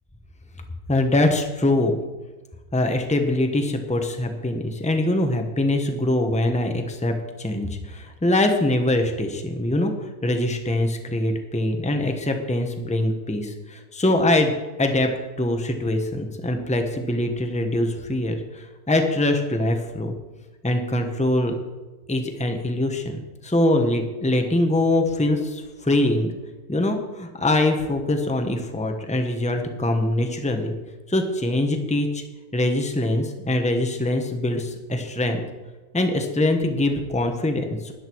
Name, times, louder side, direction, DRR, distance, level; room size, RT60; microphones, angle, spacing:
voice 1, 0.9-2.0 2.7-15.1 15.4-20.1 20.6-21.5 22.1-26.3 26.7-30.7 31.1-32.2 32.5-35.4 35.9-37.9, left 1 dB, 5° left, 5 dB, 1.1 m, -23 dB
13.5 x 10.5 x 4.7 m, 1.2 s
omnidirectional pair, 1.6 m